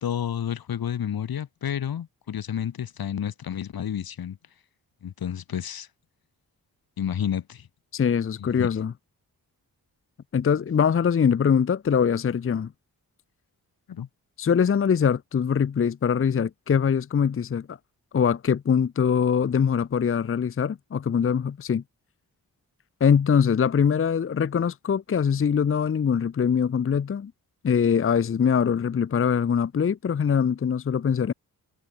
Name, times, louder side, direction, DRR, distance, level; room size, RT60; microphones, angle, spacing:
voice 1, 0.0-4.4 5.0-5.9 7.0-7.7 8.6-8.7 13.9-14.1, left 9 dB, 75° left, 1.4 m, -30 dB
voice 2, 7.9-8.9 10.3-12.7 14.4-17.8 18.1-21.8 23.0-27.3 27.6-31.3, left 7 dB, 35° left, 0.6 m, -23 dB
wide cardioid pair, 100°, 37 cm